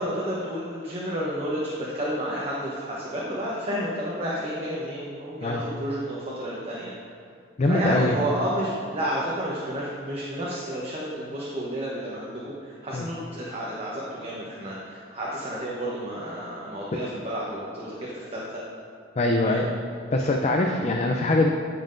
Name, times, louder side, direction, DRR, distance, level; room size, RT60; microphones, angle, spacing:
voice 1, 0.0-6.9 7.7-12.3 12.6-18.6 19.4-19.7, equal, 30° right, -6 dB, 1.0 m, -31 dB
voice 2, 7.6-8.2 12.9-13.1 19.2-19.7 20.1-21.5, left 2 dB, 35° left, 2 dB, 0.4 m, -22 dB
14.0 x 5.5 x 2.6 m, 2.3 s
head